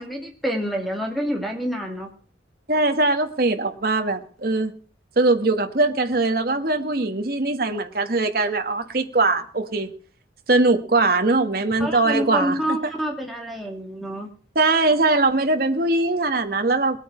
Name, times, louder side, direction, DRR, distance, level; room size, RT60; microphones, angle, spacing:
voice 1, 0.0-2.1 11.8-14.3, equal, ahead, 2 dB, 2.3 m, -27 dB
voice 2, 2.7-4.7 5.1-9.9 10.5-12.8 14.5-17.0, right 2 dB, 50° right, 7 dB, 1.5 m, -21 dB
20.0 x 9.0 x 4.9 m, 0.42 s
head